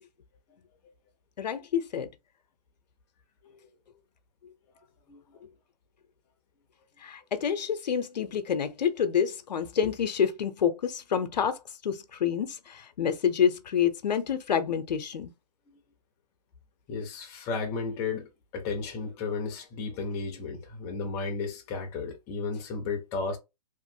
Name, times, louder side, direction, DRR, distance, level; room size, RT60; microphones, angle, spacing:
voice 1, 1.4-2.1 7.0-15.3, left 8 dB, 80° left, 0.6 m, -28 dB
voice 2, 5.1-5.4 16.9-23.4, left 4 dB, 15° left, 0.5 m, -34 dB
3.0 x 2.5 x 2.6 m
hypercardioid pair, 160°, 21 cm